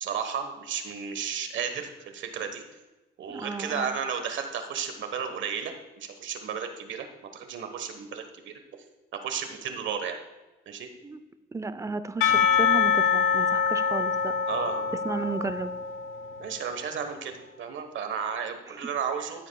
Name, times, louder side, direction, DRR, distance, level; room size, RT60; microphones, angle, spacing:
voice 1, 0.0-2.6 3.2-7.1 7.3-8.6 9.1-10.2 10.7-10.9 14.5-15.2 16.4-19.5, right 7 dB, 70° right, 7 dB, 1.2 m, -33 dB
voice 2, 3.3-3.9 11.0-11.2 11.5-14.3 15.0-15.7 18.7-18.8, right 3 dB, 15° right, 12 dB, 0.5 m, -33 dB
Percussion / Church bell, 12.2-16.6, left 7 dB, 90° left, 0.9 m, -25 dB
13.0 x 8.2 x 2.3 m, 1.1 s
cardioid pair, 90°, 20 cm